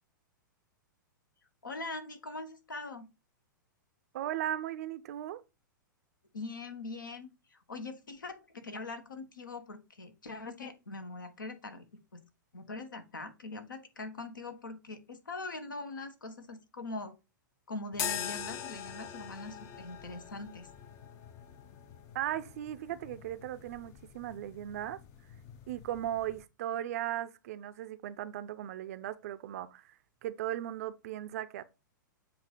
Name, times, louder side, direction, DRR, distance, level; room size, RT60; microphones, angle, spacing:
voice 1, 1.6-3.1 6.3-11.8 12.1-12.2 12.5-17.1 17.7-20.7, left 3 dB, 70° left, 1.2 m, -42 dB
voice 2, 4.1-5.4 22.1-25.0 25.7-31.6, right 12 dB, 45° right, 0.5 m, -37 dB
sound 1, 17.9-26.4, left 8 dB, 30° left, 0.6 m, -43 dB
7.7 x 2.7 x 5.2 m
figure-of-eight pair, 105°, 11 cm